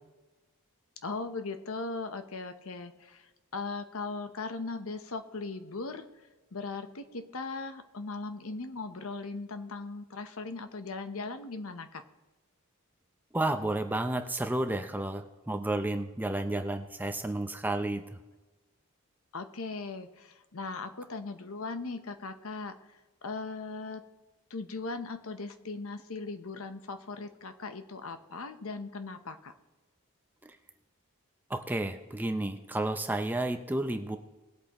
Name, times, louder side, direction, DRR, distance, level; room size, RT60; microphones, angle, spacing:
voice 1, 1.0-6.1 6.5-12.0 19.3-22.9 23.2-24.0 24.5-29.5, left 3 dB, 75° left, 9 dB, 0.9 m, -38 dB
voice 2, 13.3-18.0 30.4-30.6 31.5-34.2, right 1 dB, 10° right, 7 dB, 0.6 m, -31 dB
19.5 x 8.3 x 3.0 m, 1.1 s
head